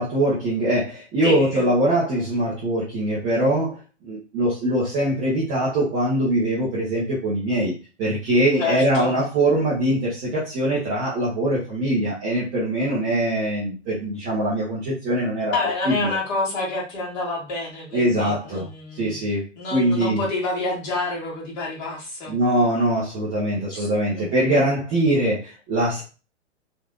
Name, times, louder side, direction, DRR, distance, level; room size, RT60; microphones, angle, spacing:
voice 1, 0.0-15.5 15.8-16.2 17.9-18.7 18.9-19.4 19.7-20.2 22.3-26.0, right 1 dB, 10° right, -8 dB, 0.4 m, -22 dB
voice 2, 1.2-1.6 8.6-9.2 15.5-19.3 19.5-22.4 23.7-24.6, left 3 dB, 35° left, -4 dB, 1.5 m, -28 dB
3.1 x 2.5 x 2.2 m, 0.31 s
figure-of-eight pair, 115°, 36 cm